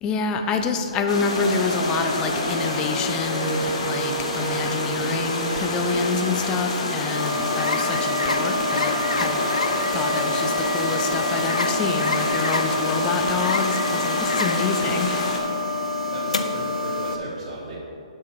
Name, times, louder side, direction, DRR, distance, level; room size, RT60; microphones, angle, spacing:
voice 1, 0.0-9.5 9.9-15.3, left 4 dB, 20° left, 6 dB, 0.5 m, -27 dB
sound 1, 1.1-15.4, left 2 dB, 65° left, 1.3 m, -28 dB
sound 2, 1.4-14.2, right 4 dB, 40° right, 0.7 m, -35 dB
sound 3, 7.1-17.2, left 2 dB, 90° left, 0.5 m, -26 dB
voice 2, 16.1-17.8, right 2 dB, 65° right, -7 dB, 1.3 m, -35 dB
6.2 x 5.5 x 4.5 m, 2.6 s
hypercardioid pair, 140°, 4 cm